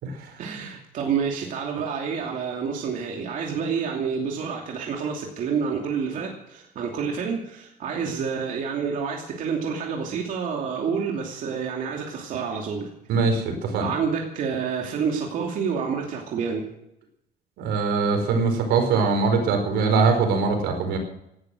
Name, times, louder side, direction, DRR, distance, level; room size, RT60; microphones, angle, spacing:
voice 1, 0.4-12.9 13.8-16.7, right 6 dB, 50° right, 0 dB, 2.7 m, -28 dB
voice 2, 13.1-13.9 17.6-21.0, right 4 dB, 85° right, 5 dB, 4.9 m, -22 dB
18.5 x 11.5 x 6.4 m, 0.79 s
cardioid pair, 175°, 17 cm